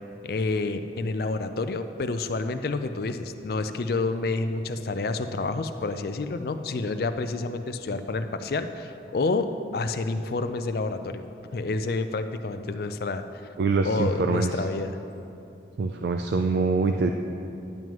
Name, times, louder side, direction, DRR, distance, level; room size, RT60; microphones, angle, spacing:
voice 1, 0.2-11.2 11.5-13.2 13.8-15.0, left 3 dB, 55° left, 9 dB, 0.4 m, -29 dB
voice 2, 13.6-14.7 15.8-17.1, right 4 dB, 65° right, 5 dB, 0.3 m, -24 dB
10.5 x 9.1 x 3.1 m, 2.7 s
head